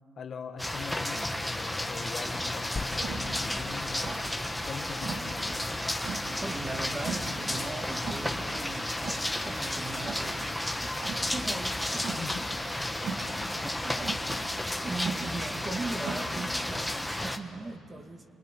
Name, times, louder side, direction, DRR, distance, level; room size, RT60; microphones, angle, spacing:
voice 1, 0.2-5.6 11.9-12.5, left 6 dB, 55° left, 6 dB, 1.7 m, -42 dB
sound 1, 0.6-17.4, left 1 dB, 5° left, 1.5 m, -33 dB
sound 2, 2.2-17.0, right 4 dB, 60° right, 3.2 m, -42 dB
sound 3, 2.8-7.0, left 3 dB, 25° left, 1.7 m, -44 dB
voice 2, 6.2-10.5 11.3-12.6 13.6-14.1 14.5-18.2, right 2 dB, 30° right, 6 dB, 2.0 m, -39 dB
28.5 x 20.0 x 9.9 m, 2.7 s
cardioid pair, 90°, 0 cm